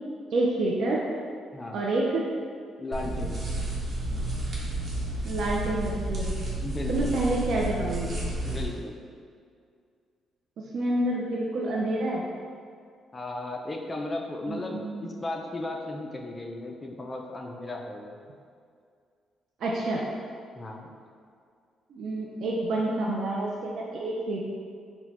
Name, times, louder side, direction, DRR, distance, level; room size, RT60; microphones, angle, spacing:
voice 1, 0.3-1.0 1.7-2.2 5.2-6.3 6.9-8.2 10.6-12.2 14.5-15.0 19.6-20.0 21.9-24.5, right 2 dB, 65° right, -3 dB, 0.5 m, -28 dB
voice 2, 1.5-1.8 2.8-3.4 6.6-7.2 8.4-8.9 13.1-18.1 20.5-20.9, left 2 dB, 25° left, 1 dB, 0.5 m, -35 dB
sound 1, 2.9-8.7, right 1 dB, 40° right, 1.1 m, -31 dB
4.2 x 2.2 x 4.1 m, 2.3 s
cardioid pair, 90°, 0 cm